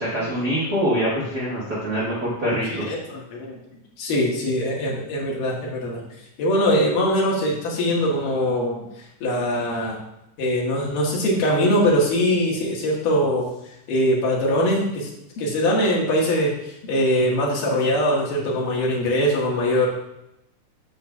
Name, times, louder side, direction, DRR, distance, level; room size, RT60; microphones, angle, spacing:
voice 1, 0.0-2.9, equal, 35° right, -8 dB, 1.9 m, -24 dB
voice 2, 2.5-3.6 4.0-6.0 6.4-8.7 9.2-10.0 10.4-13.5 13.9-15.1 15.4-19.9, equal, 90° left, -3 dB, 3.3 m, -22 dB
13.5 x 5.6 x 2.4 m, 0.84 s
omnidirectional pair, 3.7 m